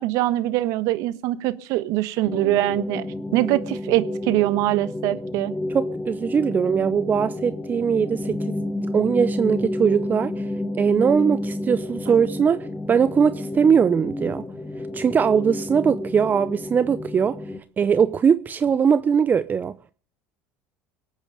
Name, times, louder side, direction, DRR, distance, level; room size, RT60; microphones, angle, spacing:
voice 1, 0.0-3.0 3.3-5.5, right 16 dB, 65° right, 1.2 m, -23 dB
sound 1, 2.3-17.6, left 1 dB, 10° left, 1.4 m, -30 dB
voice 2, 5.7-8.6 8.9-10.5 10.8-14.4 14.9-17.4 17.8-19.7, right 7 dB, 30° right, 0.6 m, -21 dB
24.0 x 8.8 x 5.2 m
supercardioid pair, 100°, 6 cm